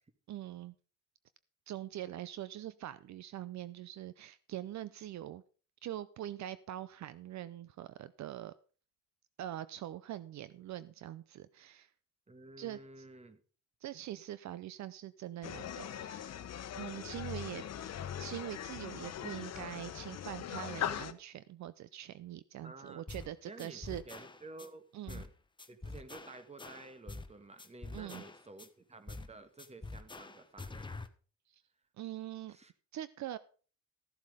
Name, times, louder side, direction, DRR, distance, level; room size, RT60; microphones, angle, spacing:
voice 1, 0.3-0.7 1.7-5.4 5.8-8.5 9.4-11.9 12.6-13.1 13.8-16.4 16.8-17.7 18.2-24.2 24.9-25.2 27.9-28.2 31.5-31.6 32.0-32.6 32.9-33.4, right 12 dB, 65° right, 16 dB, 0.6 m, -43 dB
voice 2, 12.3-13.4 22.6-23.0 23.4-25.3 25.7-31.0 32.5-32.7, right 2 dB, 20° right, 11 dB, 1.6 m, -52 dB
sound 1, 15.4-21.1, left 9 dB, 60° left, 1.0 m, -40 dB
sound 2, 23.1-23.3 23.6-24.7 25.1-25.3 25.6-27.3 27.6-28.7 29.1-29.3 29.6-31.1, left 3 dB, 15° left, 1.1 m, -46 dB
14.0 x 7.5 x 5.0 m, 0.39 s
cardioid pair, 90°, 30 cm